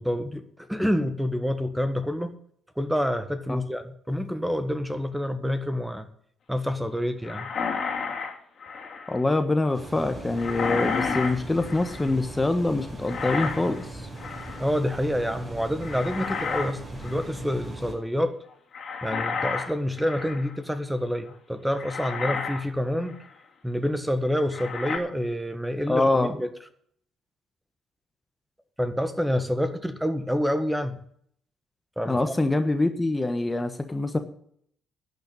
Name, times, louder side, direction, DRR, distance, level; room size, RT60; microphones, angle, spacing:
voice 1, 0.0-2.3 2.8-6.1 6.5-7.5 14.6-18.3 19.0-23.2 23.6-26.5 28.8-31.0 32.0-32.3, equal, 5° right, 9 dB, 1.5 m, -27 dB
sound 1, 7.2-9.2 10.4-12.1 13.0-13.8 14.2-14.7 15.8-16.7 17.0-17.3 18.7-20.6 21.3-21.4 21.8-22.7 23.1-23.2 24.5-25.0, left 5 dB, 55° left, 2.8 m, -31 dB
voice 2, 9.1-14.1 25.9-26.4 32.0-34.2, left 2 dB, 20° left, 8 dB, 1.4 m, -25 dB
sound 2, 9.7-17.9, right 1 dB, 25° right, 5.2 m, -39 dB
11.5 x 6.7 x 8.3 m, 0.65 s
hypercardioid pair, 50°, 0 cm